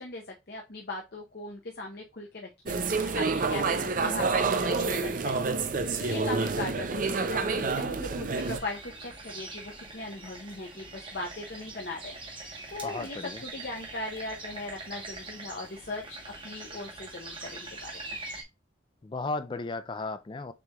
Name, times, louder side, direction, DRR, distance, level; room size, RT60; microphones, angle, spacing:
voice 1, 0.0-18.2, left 2 dB, 55° left, 0.7 m, -39 dB
sound 1, 2.7-8.6, right 4 dB, 45° right, 0.5 m, -28 dB
sound 2, 8.3-18.4, right 3 dB, 25° right, 1.1 m, -43 dB
voice 2, 12.8-13.4 19.0-20.5, left 3 dB, 25° left, 0.3 m, -35 dB
6.9 x 3.2 x 2.3 m
head